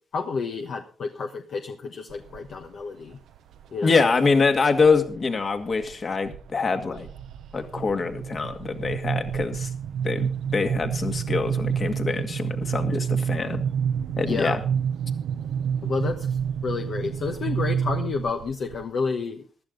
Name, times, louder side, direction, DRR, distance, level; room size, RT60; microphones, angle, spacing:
voice 1, 0.1-3.2 3.7-3.9 14.2-14.6 15.8-19.4, left 5 dB, 70° left, 4 dB, 1.2 m, -30 dB
sound 1, 2.1-2.7 3.1-3.7 4.3-5.2 5.6-5.9 6.3-18.8, right 7 dB, 90° right, 0.6 m, -29 dB
voice 2, 3.8-7.1 7.5-9.7 10.0-13.6 14.2-14.6, left 4 dB, 45° left, 6 dB, 2.1 m, -24 dB
15.5 x 12.0 x 3.9 m, 0.39 s
cardioid pair, 75°, 0 cm